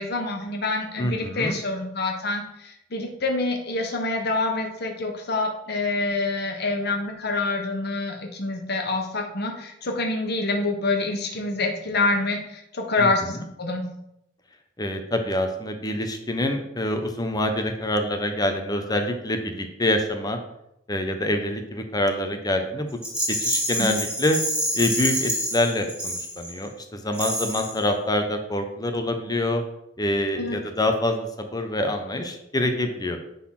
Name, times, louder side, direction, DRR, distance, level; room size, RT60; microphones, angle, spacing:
voice 1, 0.0-13.8 23.8-24.0 30.4-30.6, left 3 dB, 60° left, 2 dB, 1.4 m, -26 dB
voice 2, 1.0-1.5 13.0-13.4 14.8-20.4 20.9-22.9 23.3-24.4 24.7-29.6 30.0-33.2, left 1 dB, 20° left, 5 dB, 0.9 m, -26 dB
Rattle, 23.0-26.7 27.1-27.8, equal, 5° right, 2.9 m, -27 dB
9.9 x 4.1 x 5.9 m, 0.81 s
head